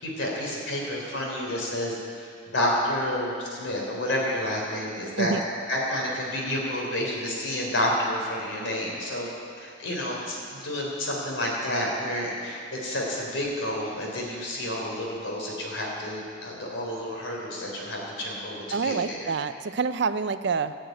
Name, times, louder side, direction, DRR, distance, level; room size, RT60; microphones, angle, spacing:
voice 1, 0.0-5.3 5.7-9.3 9.5-19.3, left 1 dB, 75° left, -2 dB, 3.6 m, -30 dB
voice 2, 18.7-20.8, right 5 dB, 60° right, 12 dB, 0.5 m, -27 dB
16.0 x 6.5 x 9.3 m, 2.4 s
head